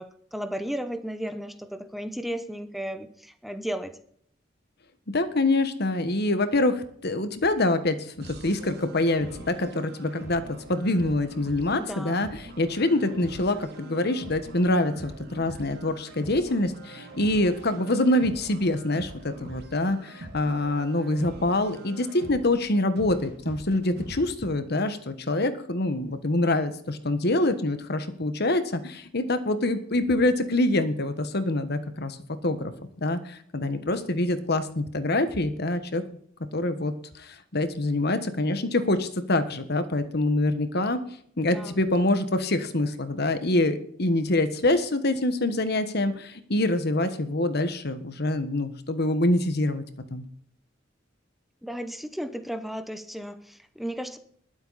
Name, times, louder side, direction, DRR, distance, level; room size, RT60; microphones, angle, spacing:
voice 1, 0.0-4.0 11.8-12.2 41.4-41.8 51.6-54.2, equal, ahead, 9 dB, 0.8 m, -34 dB
voice 2, 5.1-12.3 12.6-32.2 32.4-32.7 33.0-36.0 36.5-41.0 41.4-49.8 50.1-50.3, left 2 dB, 55° left, 10 dB, 1.4 m, -25 dB
sound 1, 8.2-24.2, right 1 dB, 55° right, 2.7 m, -43 dB
21.0 x 8.0 x 4.2 m, 0.64 s
head